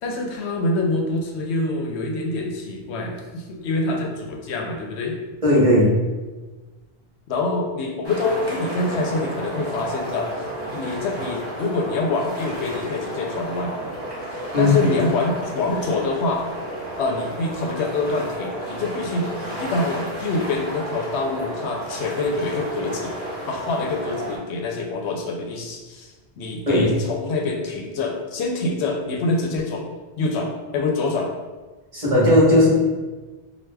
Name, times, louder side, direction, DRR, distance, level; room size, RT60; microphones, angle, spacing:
voice 1, 0.0-5.2 7.3-10.5 10.7-13.7 14.6-16.4 17.0-23.2 23.5-29.9 30.2-31.3, left 3 dB, 85° left, 1 dB, 0.8 m, -25 dB
voice 2, 5.4-5.9 14.5-14.9 26.7-26.9 31.9-32.7, left 1 dB, 35° right, -8 dB, 1.1 m, -16 dB
sound 1, 8.0-24.4, right 1 dB, 25° left, 1.1 m, -32 dB
4.6 x 2.4 x 2.2 m, 1.3 s
omnidirectional pair, 1.1 m